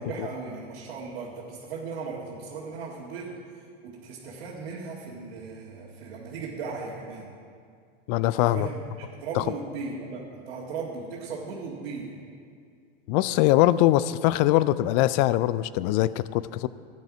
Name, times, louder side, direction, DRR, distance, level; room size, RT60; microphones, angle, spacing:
voice 1, 0.0-3.4 3.8-7.3 8.4-12.2, right 4 dB, 70° right, -5 dB, 2.1 m, -37 dB
voice 2, 8.1-8.7 9.3-9.4 13.1-16.7, left 15 dB, 45° left, 17 dB, 0.4 m, -22 dB
13.0 x 9.6 x 4.9 m, 2.3 s
hypercardioid pair, 110°, 30 cm